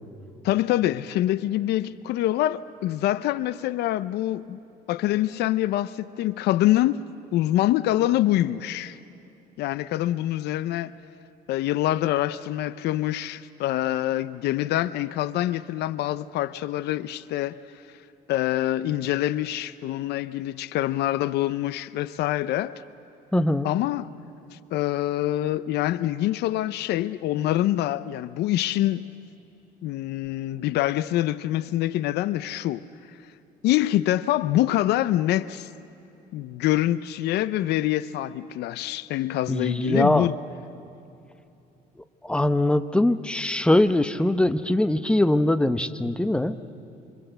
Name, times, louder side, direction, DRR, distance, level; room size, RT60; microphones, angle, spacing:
voice 1, 0.4-4.6 4.9-7.0 7.3-9.0 9.6-10.9 11.5-17.8 18.3-22.8 23.6-24.1 24.5-29.1 29.8-32.9 33.6-35.7 36.3-40.4, left 14 dB, 80° left, 0.6 m, -25 dB
voice 2, 23.3-23.7 39.5-40.3 42.2-46.6, left 1 dB, 5° left, 0.9 m, -22 dB
27.0 x 25.5 x 8.0 m
cardioid pair, 110°, 17 cm